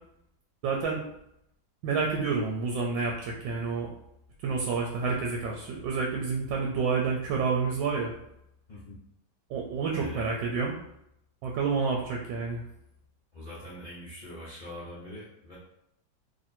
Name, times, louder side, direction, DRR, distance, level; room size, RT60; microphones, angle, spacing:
voice 1, 0.6-1.0 1.8-3.9 4.4-8.1 9.5-10.8 11.4-12.6, right 5 dB, 80° right, 0 dB, 1.3 m, -29 dB
voice 2, 13.3-15.6, left 1 dB, 45° left, -9 dB, 0.5 m, -43 dB
3.1 x 2.6 x 4.2 m, 0.80 s
omnidirectional pair, 2.1 m